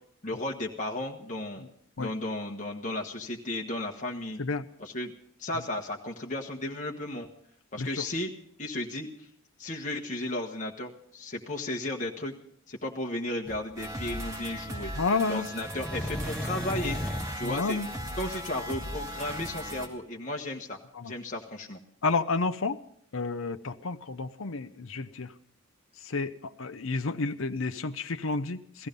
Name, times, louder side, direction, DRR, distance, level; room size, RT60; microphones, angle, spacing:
voice 1, 0.2-1.7 2.0-4.4 4.8-5.1 5.4-7.3 7.7-8.3 8.6-9.3 9.6-12.3 12.7-14.9 15.3-17.0 17.4-17.8 18.2-21.8, left 1 dB, 40° left, 0 dB, 1.4 m, -34 dB
sound 1, 13.5-13.6 15.6-17.4 19.3-19.5, equal, 5° left, 1.2 m, -35 dB
sound 2, 13.8-19.9, equal, 15° right, 2.0 m, -38 dB
voice 2, 15.0-15.5 17.4-17.9 20.9-21.2 22.0-22.8 23.1-25.3 26.0-28.9, left 3 dB, 75° left, 10 dB, 0.8 m, -30 dB
17.0 x 15.0 x 5.4 m, 0.66 s
head